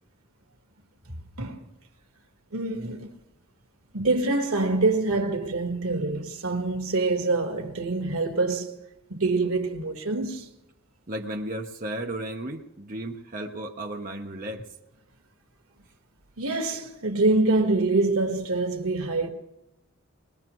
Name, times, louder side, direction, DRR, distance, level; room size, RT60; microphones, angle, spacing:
voice 1, 2.5-3.1 3.9-8.8 9.1-10.5 16.4-19.3, right 3 dB, 85° right, 1.6 m, -25 dB
voice 2, 11.1-14.7, right 1 dB, 40° right, 1.0 m, -34 dB
20.5 x 20.0 x 3.1 m
head